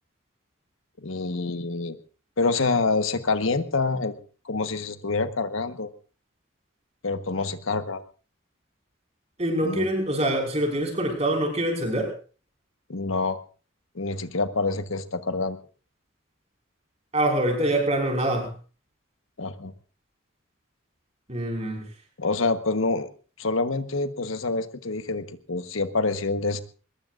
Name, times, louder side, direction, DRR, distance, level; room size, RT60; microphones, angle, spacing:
voice 1, 1.0-1.9 2.4-4.1 4.4-5.9 7.0-8.0 9.6-9.9 12.9-13.4 13.9-15.6 19.4-19.7 22.2-23.1 23.4-26.6, left 3 dB, 85° left, 9 dB, 1.3 m, -26 dB
voice 2, 9.4-12.2 17.1-18.5 21.3-21.8, right 1 dB, 30° right, 3 dB, 5.2 m, -25 dB
22.5 x 20.5 x 2.5 m, 0.37 s
head